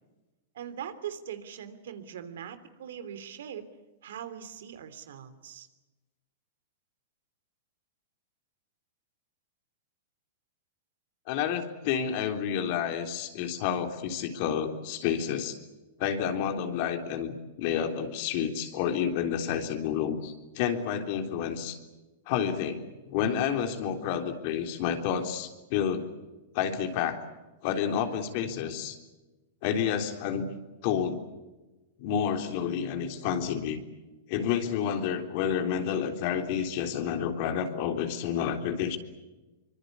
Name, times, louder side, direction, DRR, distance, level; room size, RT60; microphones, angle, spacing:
voice 1, 0.5-3.6 4.0-5.7, right 9 dB, 75° right, 11 dB, 3.1 m, -41 dB
voice 2, 11.3-15.6 16.0-21.8 22.3-26.0 26.5-27.2 27.6-29.0 29.6-30.5 30.8-31.2 32.0-33.8 34.3-39.0, left 8 dB, 50° left, 5 dB, 3.6 m, -30 dB
25.0 x 24.0 x 8.4 m, 1.1 s
hypercardioid pair, 135°, 0 cm